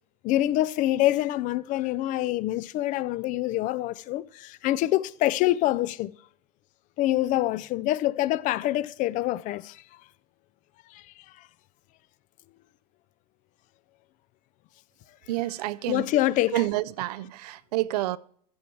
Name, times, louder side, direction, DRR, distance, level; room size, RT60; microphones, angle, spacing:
voice 1, 0.2-6.1 7.0-9.8 15.9-16.6, left 15 dB, 40° left, 0.4 m, -25 dB
voice 2, 15.3-16.1 16.5-18.2, right 16 dB, 70° right, 0.5 m, -28 dB
14.0 x 7.0 x 4.5 m
supercardioid pair, 115°, 21 cm